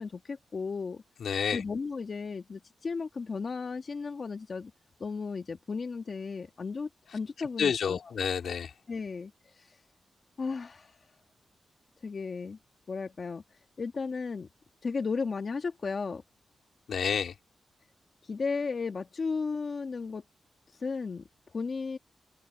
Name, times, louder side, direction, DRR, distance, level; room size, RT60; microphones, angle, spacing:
voice 1, 0.0-1.0 1.5-4.7 5.0-8.1 8.9-9.8 10.4-11.0 12.0-12.6 12.9-13.4 13.8-14.5 14.8-16.2 18.2-20.2 20.7-22.0, left 4 dB, 55° left, 1.8 m, -35 dB
voice 2, 1.2-1.6 7.4-8.7 16.9-17.3, left 7 dB, 80° left, 3.5 m, -29 dB
open air
cardioid pair, 75°, 0 cm